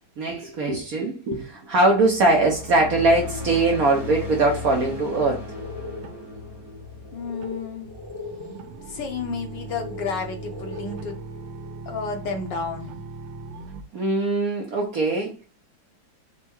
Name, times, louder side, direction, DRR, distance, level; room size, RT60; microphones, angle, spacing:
voice 1, 0.2-5.5 13.9-15.3, right 2 dB, 60° right, 1.0 m, -21 dB
sound 1, 1.8-8.4, left 3 dB, 15° right, 0.8 m, -36 dB
sound 2, 4.7-11.8, left 3 dB, 15° left, 0.9 m, -40 dB
sound 3, 4.8-5.1 6.0-13.8, right 3 dB, 75° right, 1.4 m, -40 dB
voice 2, 7.1-7.9 8.9-11.3 11.9-13.0, left 5 dB, 70° left, 1.3 m, -31 dB
4.6 x 2.1 x 4.3 m
omnidirectional pair, 2.2 m